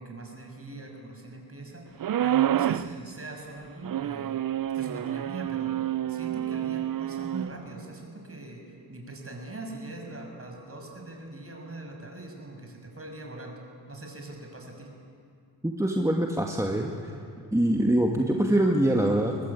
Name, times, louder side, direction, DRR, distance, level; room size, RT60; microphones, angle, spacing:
voice 1, 0.0-4.4 4.7-13.6 13.9-14.9, right 2 dB, 35° right, 2 dB, 6.5 m, -41 dB
sound 1, 2.0-2.9 3.8-7.5, right 11 dB, 55° right, 0.6 m, -28 dB
voice 2, 15.6-17.1 17.5-19.4, right 1 dB, 5° right, 1 dB, 2.2 m, -24 dB
23.5 x 19.5 x 8.6 m, 2.4 s
cardioid pair, 55°, 41 cm